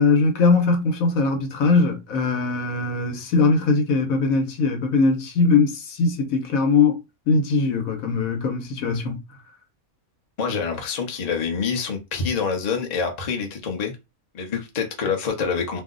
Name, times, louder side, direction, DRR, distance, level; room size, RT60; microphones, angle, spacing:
voice 1, 0.0-7.0 7.3-9.2, left 4 dB, 75° left, 1.2 m, -20 dB
voice 2, 10.4-13.9 14.3-15.8, left 5 dB, 40° left, 0.6 m, -26 dB
2.7 x 2.0 x 3.7 m
omnidirectional pair, 1.5 m